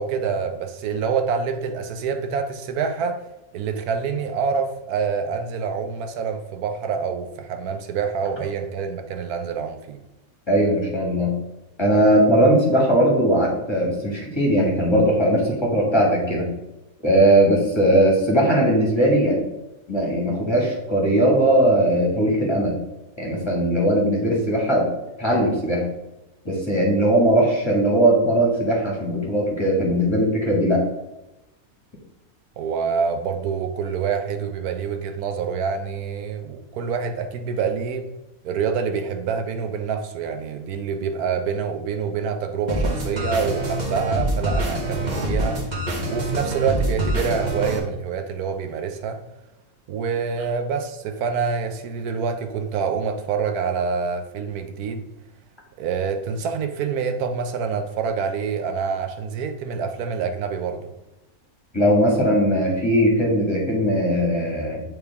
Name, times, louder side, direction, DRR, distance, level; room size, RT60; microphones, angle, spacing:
voice 1, 0.0-3.2 3.5-10.0 32.6-38.1 38.4-45.6 46.1-49.2 49.9-55.1 55.8-60.9, right 6 dB, 85° right, 6 dB, 1.2 m, -26 dB
voice 2, 10.5-11.3 11.8-16.5 17.0-19.4 19.9-22.8 23.2-24.8 25.2-25.8 26.4-30.8 61.7-64.8, right 1 dB, 20° left, -3 dB, 1.6 m, -19 dB
sound 1, 42.7-47.8, right 1 dB, 30° right, 1.3 m, -25 dB
9.0 x 3.5 x 3.4 m, 0.95 s
omnidirectional pair, 1.6 m